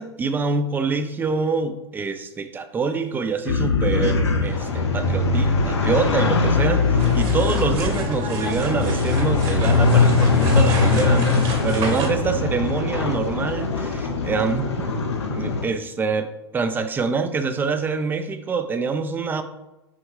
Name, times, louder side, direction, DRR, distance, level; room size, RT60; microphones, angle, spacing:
voice 1, 0.0-14.9 15.3-16.3 16.5-19.4, right 4 dB, 15° right, 9 dB, 0.4 m, -25 dB
sound 1, 3.4-15.7, left 4 dB, 75° left, 0.7 m, -21 dB
sound 2, 7.0-12.1, right 2 dB, 40° right, 1.2 m, -31 dB
6.2 x 2.3 x 3.6 m, 0.98 s
figure-of-eight pair, 95°, 15 cm